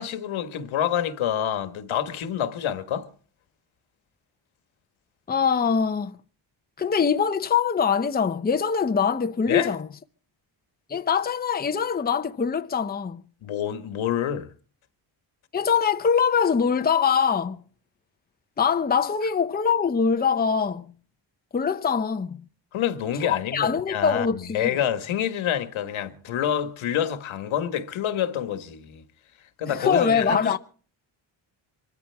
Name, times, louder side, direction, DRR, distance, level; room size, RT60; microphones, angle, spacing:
voice 1, 0.0-3.1 9.5-9.8 13.4-14.5 22.7-29.0 29.6-30.6, left 10 dB, 75° left, 1.7 m, -27 dB
voice 2, 5.3-6.2 6.8-9.9 10.9-13.2 15.5-17.6 18.6-20.8 21.5-22.4 23.2-24.8 29.7-30.6, left 6 dB, 20° left, 0.8 m, -23 dB
24.5 x 14.0 x 3.5 m
cardioid pair, 100°, 48 cm